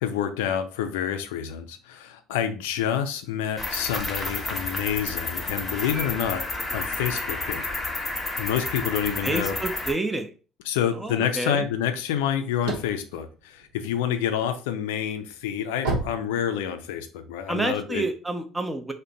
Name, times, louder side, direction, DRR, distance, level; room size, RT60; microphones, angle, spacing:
voice 1, 0.0-6.4 6.7-7.7 8.4-9.5 10.7-18.0, left 9 dB, 75° left, 8 dB, 0.3 m, -28 dB
Cricket, 3.6-9.9, left 2 dB, 25° left, 0.9 m, -31 dB
voice 2, 9.2-10.3 10.9-11.7 17.5-18.9, right 2 dB, 15° right, 7 dB, 0.6 m, -29 dB
sound 1, 12.4-14.3 14.8-17.0, right 3 dB, 80° right, 0.8 m, -31 dB
2.5 x 2.1 x 3.9 m, 0.36 s
hypercardioid pair, 60°, 0 cm